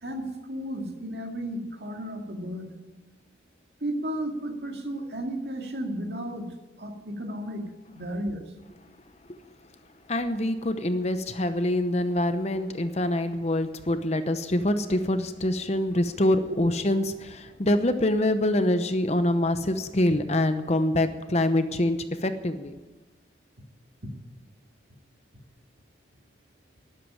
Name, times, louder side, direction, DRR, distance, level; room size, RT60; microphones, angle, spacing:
voice 1, 0.0-2.7 3.8-6.5 6.8-7.6 7.9-8.5, right 1 dB, 60° right, 3 dB, 2.2 m, -33 dB
voice 2, 10.1-22.7, left 1 dB, 35° left, 9 dB, 0.8 m, -25 dB
12.5 x 11.5 x 8.9 m, 1.2 s
head